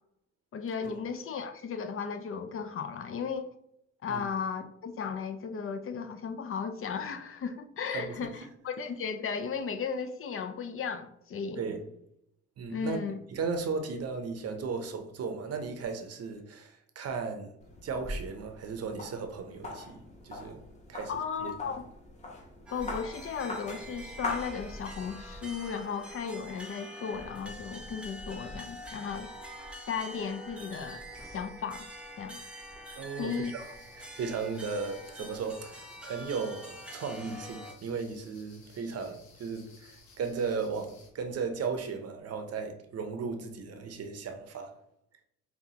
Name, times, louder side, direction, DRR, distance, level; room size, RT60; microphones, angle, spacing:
voice 1, 0.5-3.5 4.0-11.6 12.7-13.2 21.1-21.8 22.7-29.3 29.9-31.9 32.2-32.4 33.2-33.7, left 6 dB, 45° left, 0.5 m, -35 dB
voice 2, 7.9-8.3 11.6-11.9 12.6-13.0 13.3-17.6 17.8-20.6 20.9-21.1 21.4-21.5 33.0-33.5 34.0-44.7, right 5 dB, 55° right, 0.7 m, -36 dB
sound 1, 17.6-25.2, left 2 dB, 25° left, 1.0 m, -42 dB
sound 2, 22.7-37.7, equal, 5° right, 0.8 m, -45 dB
sound 3, 33.6-41.1, left 3 dB, 75° left, 0.9 m, -58 dB
5.3 x 2.3 x 2.8 m
cardioid pair, 90°, 30 cm